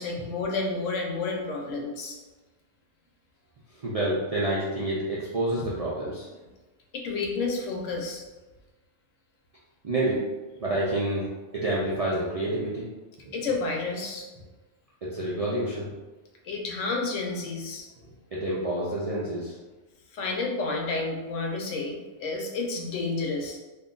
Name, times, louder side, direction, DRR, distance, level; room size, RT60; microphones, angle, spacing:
voice 1, 0.0-2.2 6.9-8.2 13.3-14.3 16.4-17.9 20.1-23.6, left 3 dB, 90° left, 1 dB, 1.0 m, -30 dB
voice 2, 3.8-6.3 9.8-10.2 10.6-12.9 13.2-13.3 15.0-15.9 18.3-19.6, right 1 dB, 55° right, -7 dB, 0.4 m, -28 dB
2.6 x 2.2 x 3.7 m, 1.2 s
omnidirectional pair, 1.2 m